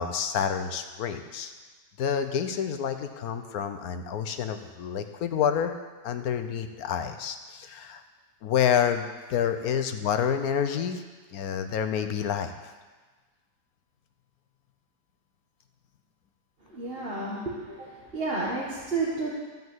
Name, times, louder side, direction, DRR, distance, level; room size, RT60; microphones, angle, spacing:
voice 1, 0.0-1.5 2.0-5.7 6.0-8.0 8.4-9.0 9.3-11.0 11.3-12.5, left 8 dB, 80° left, 8 dB, 1.3 m, -28 dB
voice 2, 16.7-17.4 17.7-19.3, right 3 dB, 40° right, -6 dB, 1.8 m, -31 dB
14.0 x 5.3 x 7.9 m, 1.3 s
omnidirectional pair, 1.6 m